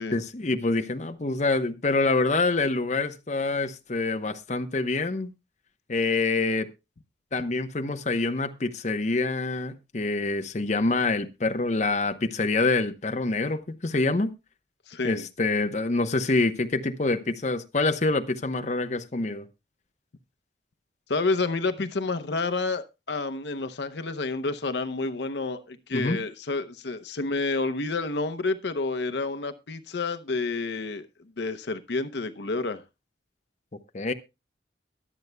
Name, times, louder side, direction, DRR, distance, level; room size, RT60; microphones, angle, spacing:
voice 1, 0.1-5.3 5.9-6.7 7.3-14.3 15.0-19.5 25.9-26.2 33.9-34.1, left 3 dB, 40° left, 0.8 m, -26 dB
voice 2, 14.9-15.2 21.1-31.1 31.4-32.8, left 3 dB, 70° left, 0.7 m, -29 dB
22.5 x 8.0 x 2.2 m
head